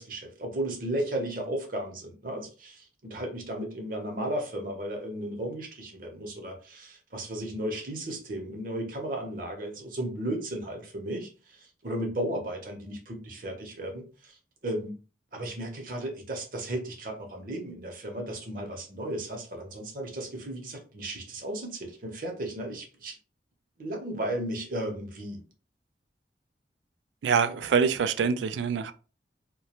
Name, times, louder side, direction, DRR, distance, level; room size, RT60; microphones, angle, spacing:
voice 1, 0.0-14.4 14.6-15.0 15.3-23.2 23.8-25.4, right 1 dB, 50° right, 0.7 m, -35 dB
voice 2, 27.2-28.9, right 6 dB, 90° right, 0.3 m, -25 dB
2.3 x 2.2 x 2.9 m
head